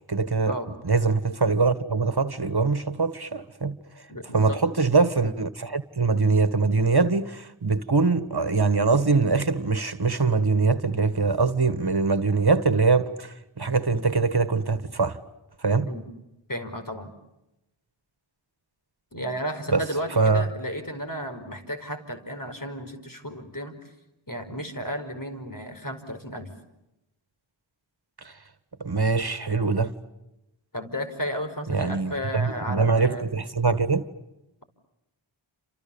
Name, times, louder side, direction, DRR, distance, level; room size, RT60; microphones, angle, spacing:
voice 1, 0.1-0.5 0.8-3.8 4.3-15.2 15.6-15.9 19.7-19.8 20.1-20.4 28.2-28.3 28.8-29.9 31.7-34.1, right 4 dB, 50° right, 1.7 m, -23 dB
voice 2, 4.1-4.6 15.9-16.0 16.5-17.1 19.1-23.7 24.3-26.6 30.7-33.3, equal, 40° left, 5.0 m, -33 dB
29.5 x 27.5 x 7.1 m
wide cardioid pair, 45°, 48 cm